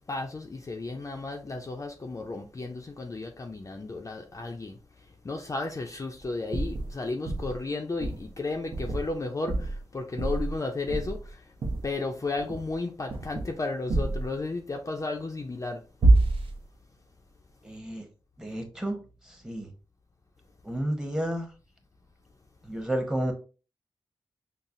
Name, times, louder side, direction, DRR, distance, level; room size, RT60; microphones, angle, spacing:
voice 1, 0.1-4.8 5.2-11.4 11.8-15.8, left 3 dB, 35° left, 0.5 m, -33 dB
sound 1, 6.5-6.9 7.3-7.6 8.0-8.3 8.7-9.2 9.5-9.8 10.2-10.6 10.9-11.3 11.6-11.9 12.4-12.7 13.1-13.5 13.9-14.3 16.0-16.6, right 2 dB, 70° right, 0.7 m, -26 dB
voice 2, 17.6-18.0 18.4-19.7 20.6-21.5 22.6-23.3, right 1 dB, 5° right, 0.9 m, -31 dB
5.6 x 2.1 x 2.5 m
cardioid pair, 75°, 9 cm